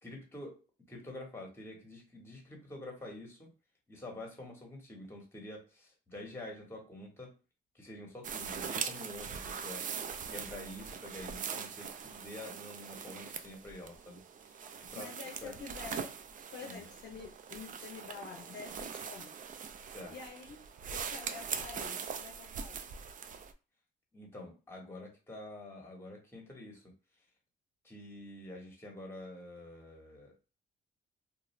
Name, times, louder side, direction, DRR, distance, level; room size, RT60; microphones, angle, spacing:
voice 1, 0.0-0.6 0.9-3.5 3.9-7.3 7.7-9.9 10.3-14.6 14.9-15.1 15.4-15.5 16.6-16.8 19.9-20.1 24.1-26.9 27.8-30.3, left 1 dB, 10° left, 1 dB, 1.2 m, -47 dB
sound 1, 8.2-23.5, right 6 dB, 40° right, 0.4 m, -42 dB
voice 2, 14.9-16.1 16.5-19.4 20.1-22.9, left 5 dB, 60° left, 2 dB, 0.6 m, -48 dB
2.4 x 2.4 x 3.1 m, 0.32 s
cardioid pair, 90°, 20 cm